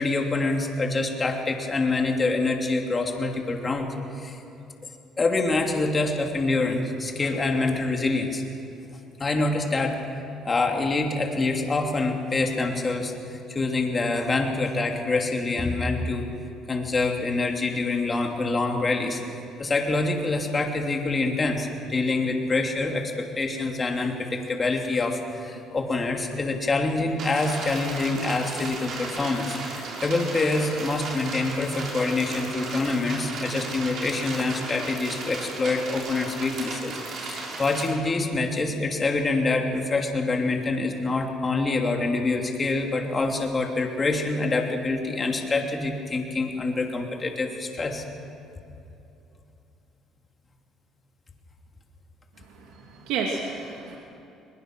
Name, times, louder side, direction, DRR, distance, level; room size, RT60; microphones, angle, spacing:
voice 1, 0.0-3.9 4.2-4.4 5.2-8.4 9.2-10.0 10.4-16.3 16.7-19.2 19.6-37.0 37.3-48.0, left 3 dB, 30° left, 2 dB, 3.0 m, -26 dB
sound 1, 27.2-37.9, right 3 dB, 60° right, 5.7 m, -35 dB
voice 2, 52.5-54.0, right 5 dB, 85° right, 0 dB, 2.5 m, -31 dB
22.0 x 21.0 x 6.2 m, 2.8 s
cardioid pair, 90°, 0 cm